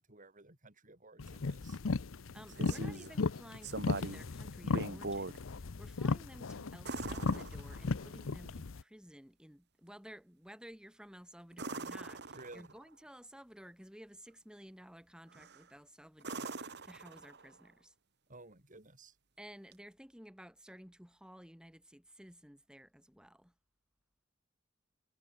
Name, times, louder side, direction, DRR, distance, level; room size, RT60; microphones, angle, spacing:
voice 1, 0.0-1.8 2.6-2.8 12.3-12.7 18.3-19.2, right 2 dB, 40° right, 6.7 m, -55 dB
sound 1, 1.2-8.8, left 3 dB, 85° left, 0.7 m, -36 dB
voice 2, 2.3-17.9 19.4-23.5, equal, 5° right, 2.2 m, -54 dB
sound 2, 2.3-3.1 3.6-4.3 4.6-5.4 6.8-8.1 11.5-12.8 15.3-15.7 16.2-17.6 19.7-19.8, right 3 dB, 60° right, 2.7 m, -42 dB
head